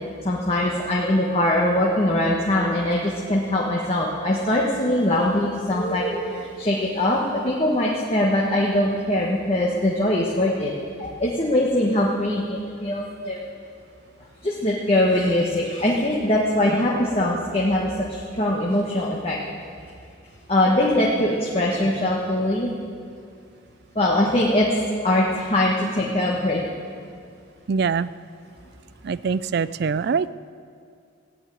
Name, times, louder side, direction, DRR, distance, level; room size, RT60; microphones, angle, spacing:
voice 1, 0.2-10.7 11.0-13.4 14.4-19.4 20.5-22.7 23.9-24.7 25.0-26.7, left 1 dB, 30° left, -4 dB, 1.4 m, -22 dB
voice 2, 27.7-28.1 29.0-30.3, right 5 dB, 50° right, 17 dB, 0.3 m, -23 dB
15.5 x 9.2 x 9.2 m, 2.3 s
head